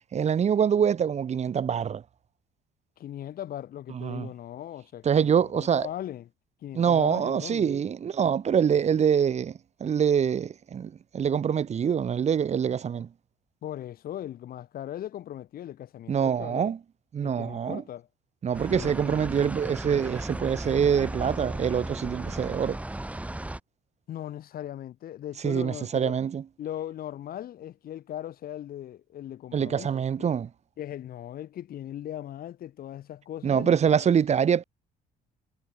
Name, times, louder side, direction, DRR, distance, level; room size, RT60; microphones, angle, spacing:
voice 1, 0.1-2.0 3.9-4.3 5.1-5.9 6.7-9.5 9.8-13.1 16.1-16.8 17.1-17.8 18.4-22.8 25.4-26.4 29.5-30.5 33.4-34.6, right 8 dB, 40° right, 2.0 m, -25 dB
voice 2, 3.0-6.3 6.6-7.8 13.6-16.6 17.2-18.1 18.7-19.2 24.1-26.2 26.6-30.3 30.8-34.1, left 11 dB, 60° left, 4.7 m, -39 dB
sound 1, 18.5-23.6, right 1 dB, 10° right, 4.6 m, -35 dB
cardioid pair, 110°, 17 cm